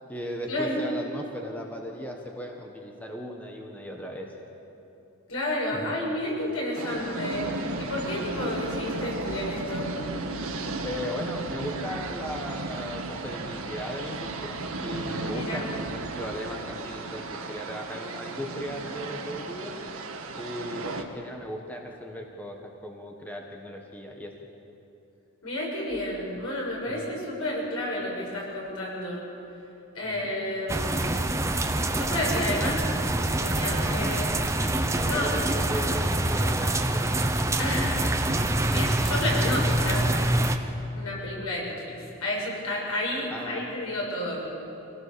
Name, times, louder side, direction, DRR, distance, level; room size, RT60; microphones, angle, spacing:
voice 1, 0.1-4.3 5.7-5.9 10.8-14.5 14.8-19.8 20.3-22.6 22.8-24.3 26.9-27.1 30.0-30.3 32.2-32.5 33.8-34.0 34.9-37.3 43.3-43.7, equal, 5° left, 1 dB, 1.5 m, -37 dB
voice 2, 5.3-9.9 15.3-15.7 25.4-29.2 29.9-31.1 31.9-32.8 33.4-34.3 35.0-35.3 37.6-38.0 38.4-40.4 40.9-42.0 42.2-44.5, left 1 dB, 90° left, -3 dB, 6.7 m, -31 dB
sound 1, 6.7-21.0, right 2 dB, 80° right, 1.7 m, -34 dB
sound 2, 30.7-40.6, right 1 dB, 15° right, 0.7 m, -25 dB
25.0 x 17.5 x 7.0 m, 3.0 s
head